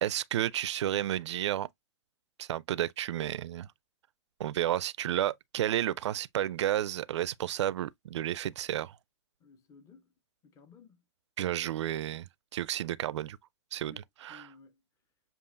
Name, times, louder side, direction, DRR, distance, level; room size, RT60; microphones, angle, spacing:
voice 1, 0.0-1.7 2.4-3.7 4.4-9.0 11.4-12.3 12.5-13.4 13.7-13.9 14.2-14.4, right 12 dB, 75° right, 0.4 m, -31 dB
voice 2, 9.4-10.1 10.4-11.0 13.9-14.0 14.3-14.8, left 4 dB, 20° left, 0.7 m, -56 dB
6.9 x 2.5 x 2.4 m
hypercardioid pair, 125°, 15 cm